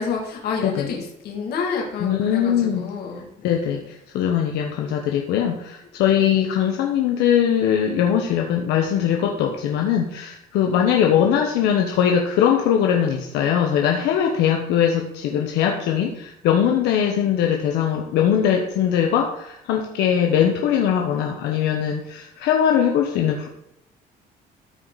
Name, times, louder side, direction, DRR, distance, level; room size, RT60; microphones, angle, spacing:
voice 1, 0.0-3.6 6.2-6.3, left 5 dB, 70° left, -1 dB, 2.6 m, -29 dB
voice 2, 2.0-2.9 3.4-23.5, left 9 dB, 90° left, 2 dB, 1.0 m, -21 dB
13.5 x 4.7 x 4.1 m, 0.80 s
cardioid pair, 110°, 17 cm